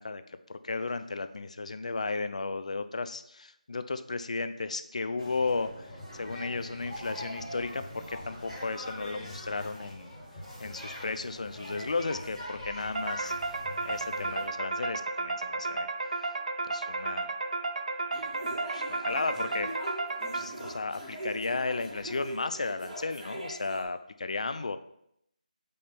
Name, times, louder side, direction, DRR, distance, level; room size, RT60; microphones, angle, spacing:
voice 1, 0.0-10.1 10.6-13.5 13.8-15.9 16.6-17.3 18.7-19.7 20.3-24.8, left 3 dB, 55° left, 11 dB, 0.5 m, -34 dB
sound 1, 5.2-14.5, left 1 dB, 5° left, 2.0 m, -43 dB
sound 2, 12.9-20.8, right 3 dB, 55° right, 0.6 m, -33 dB
sound 3, 18.1-23.8, right 1 dB, 15° right, 1.9 m, -41 dB
8.5 x 3.3 x 4.3 m, 0.74 s
figure-of-eight pair, 160°, 5 cm